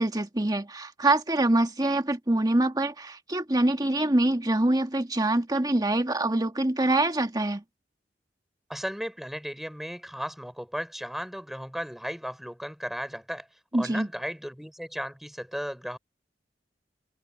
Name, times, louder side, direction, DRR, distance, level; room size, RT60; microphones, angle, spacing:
voice 1, 0.0-7.6 13.7-14.1, right 1 dB, 20° right, 1.7 m, -25 dB
voice 2, 8.7-13.5 13.7-16.0, equal, ahead, 5.2 m, -35 dB
head